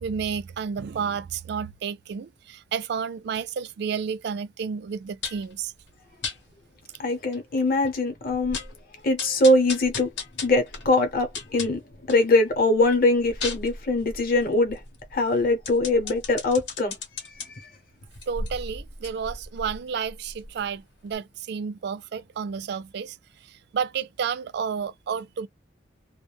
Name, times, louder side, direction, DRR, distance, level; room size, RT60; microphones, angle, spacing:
voice 1, 0.0-5.7 18.3-23.2 23.7-25.5, right 6 dB, 65° right, 0.3 m, -31 dB
sound 1, 5.2-5.5 6.2-6.4 6.9-7.0 7.3-7.4 7.9-8.0 8.3-8.8 9.2-12.3 12.7-17.5 18.1-20.8 21.1-21.2, left 4 dB, 80° left, 0.9 m, -36 dB
voice 2, 7.0-8.6 9.0-10.1 10.4-11.8 12.1-14.8 15.1-17.0 17.3-17.7, left 2 dB, 55° left, 0.8 m, -22 dB
2.3 x 2.1 x 3.2 m
head